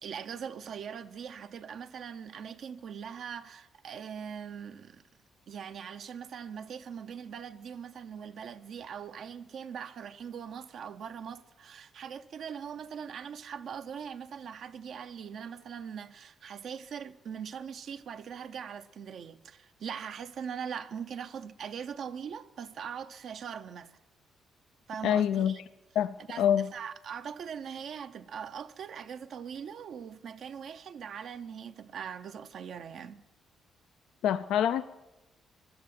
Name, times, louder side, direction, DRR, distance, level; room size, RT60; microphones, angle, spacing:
voice 1, 0.0-5.0 5.5-23.9 24.9-25.6 26.3-33.2, right 7 dB, 65° right, 0.6 m, -41 dB
voice 2, 25.0-25.5 26.0-26.6 34.2-34.8, left 9 dB, 85° left, 0.5 m, -26 dB
16.5 x 11.5 x 7.3 m
cardioid pair, 90°, 0 cm